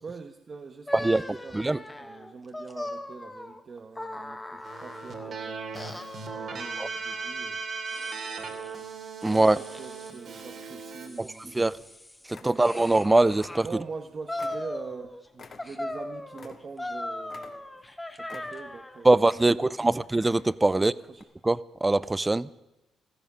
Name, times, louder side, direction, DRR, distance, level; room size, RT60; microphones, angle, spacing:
voice 1, 0.0-5.6 6.3-7.6 9.4-11.8 12.4-12.7 13.6-17.7 18.2-19.2 19.5-19.9 20.7-21.2, right 4 dB, 40° right, 5 dB, 1.1 m, -43 dB
sound 1, 0.9-5.3 5.7-7.3 7.9-8.8 9.2-10.2 10.8-13.7 14.3-15.3 15.6-19.0, left 1 dB, 10° left, 1.4 m, -39 dB
voice 2, 0.9-1.8 6.8-6.9 9.2-9.6 11.2-11.7 12.3-13.7 19.0-20.9 21.4-22.5, right 2 dB, 15° right, 19 dB, 0.5 m, -23 dB
Keyboard (musical), 4.6-11.1, right 4 dB, 55° right, 2.9 m, -37 dB
sound 2, 10.8-11.4 11.8-11.9 12.3-13.0 13.3-14.0 14.4-16.9 17.3-17.9 18.3-18.8 19.2-19.8 20.1-20.7 21.1-21.2, left 4 dB, 45° left, 1.8 m, -50 dB
15.5 x 14.0 x 6.2 m, 0.96 s
cardioid pair, 90°, 0 cm